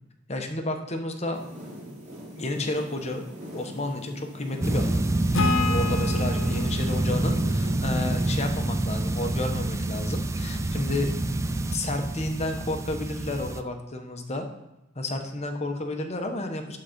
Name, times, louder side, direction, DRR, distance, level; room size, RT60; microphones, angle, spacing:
voice 1, 0.3-1.4 2.3-3.3 3.5-5.0 5.6-11.1 11.5-14.5 14.9-16.8, left 2 dB, 35° left, 5 dB, 1.0 m, -31 dB
sound 1, 1.3-8.3, equal, 35° right, 2.6 m, -41 dB
sound 2, 4.6-13.6, right 2 dB, 15° right, 0.4 m, -27 dB
Acoustic guitar / Strum, 5.3-8.8, left 3 dB, 85° left, 0.9 m, -30 dB
11.5 x 3.9 x 5.1 m, 0.93 s
head